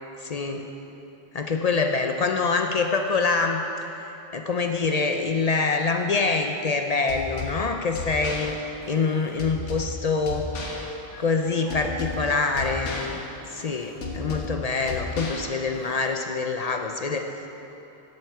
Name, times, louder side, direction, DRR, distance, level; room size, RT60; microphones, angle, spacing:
voice 1, 0.2-0.7 1.3-3.7 4.3-8.5 8.9-10.5 11.2-13.2 13.5-17.5, left 4 dB, 50° left, 4 dB, 0.4 m, -25 dB
sound 1, 7.1-16.1, left 3 dB, 85° left, 1.4 m, -35 dB
12.0 x 7.9 x 4.6 m, 3.0 s
omnidirectional pair, 1.2 m